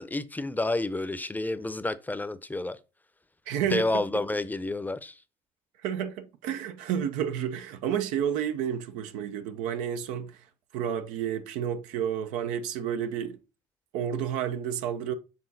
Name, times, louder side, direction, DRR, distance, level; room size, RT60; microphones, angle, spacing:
voice 1, 0.0-2.8 3.6-5.2, left 2 dB, 15° left, 0.7 m, -30 dB
voice 2, 3.5-4.0 5.8-10.4 10.7-13.4 13.9-15.1, right 9 dB, 80° right, 0.8 m, -30 dB
7.1 x 3.6 x 4.0 m
supercardioid pair, 65°, 13 cm